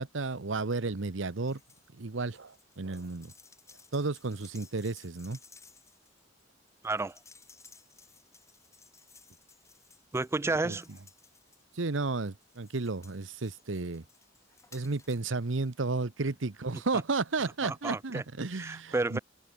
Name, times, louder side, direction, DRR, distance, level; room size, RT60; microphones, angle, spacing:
voice 1, 0.0-1.6 1.9-3.3 3.9-5.4 10.6-10.8 11.7-14.0 14.7-19.2, right 3 dB, 75° right, 1.0 m, -33 dB
sound 1, 1.4-1.9 2.2-11.9 12.4-15.3 15.6-15.7, left 4 dB, 15° left, 6.2 m, -58 dB
voice 2, 6.8-7.2 10.1-10.9 17.6-18.2 18.5-19.2, right 3 dB, 15° right, 0.3 m, -31 dB
head